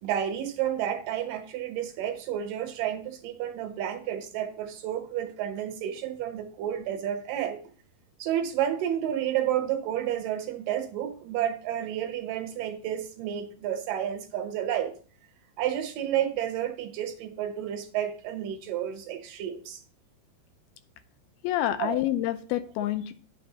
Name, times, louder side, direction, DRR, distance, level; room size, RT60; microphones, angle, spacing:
voice 1, 0.0-7.6 8.2-14.9 15.6-19.8 21.8-22.0, right 10 dB, 70° right, 7 dB, 2.4 m, -31 dB
voice 2, 21.4-23.1, left 13 dB, 85° left, 9 dB, 2.6 m, -28 dB
9.4 x 6.0 x 4.0 m, 0.43 s
omnidirectional pair, 4.4 m